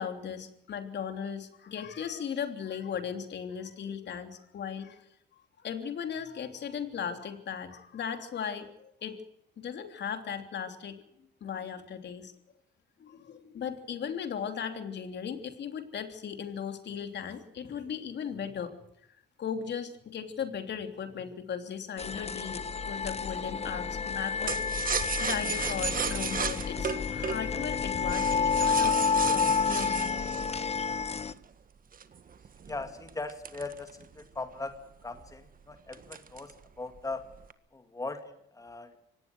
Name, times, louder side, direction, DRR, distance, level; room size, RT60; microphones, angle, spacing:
voice 1, 0.0-5.0 5.6-9.2 9.6-11.0 11.4-12.3 13.0-18.7 19.4-30.2, left 7 dB, 60° left, 7 dB, 3.3 m, -37 dB
sound 1, 22.0-31.3, left 5 dB, 30° left, 1.0 m, -30 dB
sound 2, 24.5-31.4 31.9-34.4 34.7-34.8 35.1-35.5 35.9-36.6 36.9-37.5, right 6 dB, 45° right, 1.6 m, -35 dB
voice 2, 32.7-34.8 35.0-37.3 37.7-38.9, left 3 dB, 15° left, 7 dB, 2.3 m, -39 dB
24.5 x 18.5 x 6.4 m, 0.78 s
cardioid pair, 90°, 20 cm